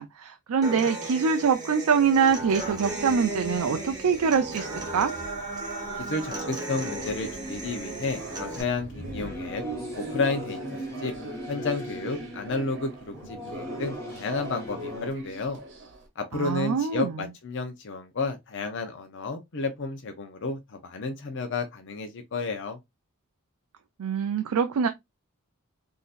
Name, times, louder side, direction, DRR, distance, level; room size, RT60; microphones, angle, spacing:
voice 1, 0.0-5.1 16.3-17.3 24.0-24.9, right 6 dB, 75° right, 0.4 m, -24 dB
Human voice / Acoustic guitar, 0.6-8.6, right 2 dB, 20° right, 1.2 m, -35 dB
sound 1, 1.9-16.1, right 2 dB, 55° right, 1.0 m, -41 dB
voice 2, 6.0-9.6 9.9-11.1 11.5-15.6 16.2-22.8, left 3 dB, 55° left, 0.6 m, -31 dB
Singing / Musical instrument, 8.9-15.1, left 1 dB, 15° left, 1.3 m, -39 dB
3.7 x 2.7 x 2.4 m
head